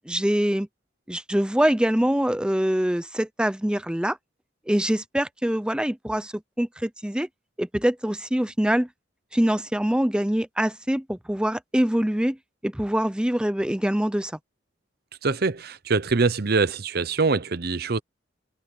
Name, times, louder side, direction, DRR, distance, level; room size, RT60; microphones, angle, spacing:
voice 1, 0.1-0.7 1.1-4.2 4.7-7.3 7.6-8.9 9.3-12.4 12.6-14.3, equal, 5° right, 0.6 m, -24 dB
voice 2, 15.2-18.0, right 4 dB, 60° right, 0.8 m, -24 dB
open air
head